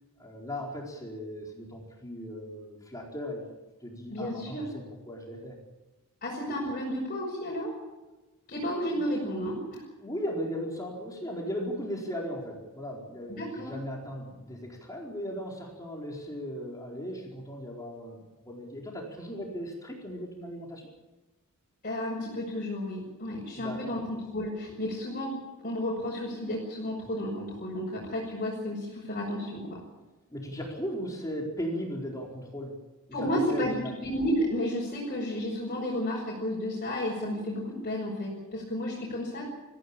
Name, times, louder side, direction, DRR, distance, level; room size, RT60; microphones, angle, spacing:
voice 1, 0.2-3.4 3.8-5.6 10.0-20.9 23.5-24.0 30.3-32.8 33.5-33.9, equal, 15° left, -1 dB, 4.5 m, -37 dB
voice 2, 4.1-4.6 6.2-7.7 8.5-9.8 13.3-13.8 21.8-29.8 33.1-39.5, equal, 40° left, -4 dB, 5.9 m, -32 dB
23.5 x 15.5 x 8.8 m, 1.1 s
head